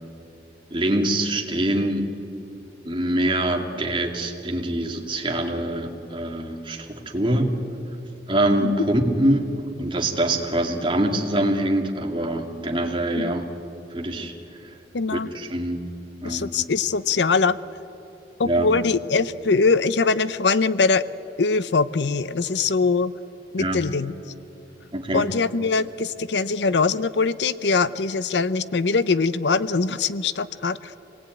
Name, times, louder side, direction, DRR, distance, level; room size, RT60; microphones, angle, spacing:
voice 1, 0.7-2.1 2.8-7.5 8.3-9.5 9.8-13.4 13.9-14.3 15.1-15.8 16.2-16.5 18.4-18.7 23.6-23.8 24.9-25.3, right 1 dB, 30° right, 2 dB, 2.4 m, -24 dB
voice 2, 14.9-15.3 16.2-17.6 18.4-21.0 21.4-23.1 23.5-24.1 25.1-30.9, left 4 dB, 80° left, 15 dB, 0.6 m, -22 dB
26.5 x 19.0 x 9.2 m, 2.9 s
head